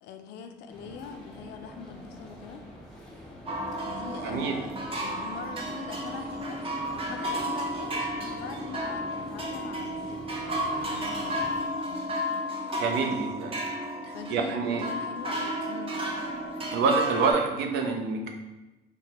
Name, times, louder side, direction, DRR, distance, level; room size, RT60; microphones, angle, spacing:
voice 1, 0.0-2.6 3.9-12.0 12.9-13.5 14.1-16.0, left 6 dB, 80° left, 7 dB, 0.4 m, -43 dB
sound 1, 0.7-11.6, equal, 5° left, 0.8 m, -46 dB
sound 2, 3.5-17.3, right 1 dB, 35° right, 0.6 m, -32 dB
voice 2, 4.2-4.6 12.8-13.5 14.0-14.9 16.7-18.3, right 4 dB, 85° right, 3 dB, 0.5 m, -27 dB
4.3 x 2.1 x 2.9 m, 1.1 s
cardioid pair, 110°, 17 cm